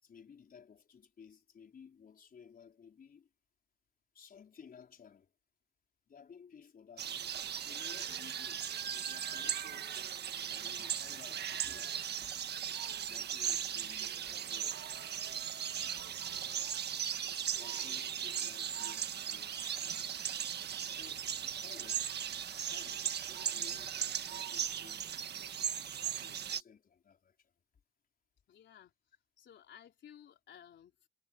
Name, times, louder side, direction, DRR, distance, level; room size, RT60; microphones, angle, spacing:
voice 1, 0.0-3.3 4.1-5.3 6.1-7.3 7.6-9.9 10.5-12.1 13.0-15.1 17.5-20.5 20.9-22.2 22.6-25.7 26.0-27.5, left 7 dB, 45° left, 4.9 m, -57 dB
sound 1, 7.0-26.6, right 9 dB, 60° right, 1.5 m, -38 dB
voice 2, 28.5-31.1, left 9 dB, 65° left, 4.1 m, -57 dB
cardioid pair, 90°, 20 cm